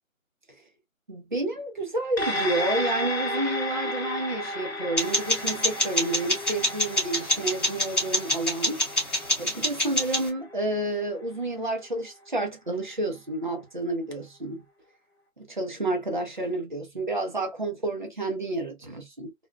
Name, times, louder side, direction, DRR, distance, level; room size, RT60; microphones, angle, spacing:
voice 1, 1.1-8.8 9.4-14.6 15.4-19.3, right 2 dB, 35° right, 0.6 m, -30 dB
sound 1, 2.2-10.9 11.2-11.3, left 1 dB, 50° left, 0.8 m, -33 dB
sound 2, 5.0-10.3, left 1 dB, ahead, 1.1 m, -27 dB
3.6 x 2.2 x 2.2 m
hypercardioid pair, 175°, 42 cm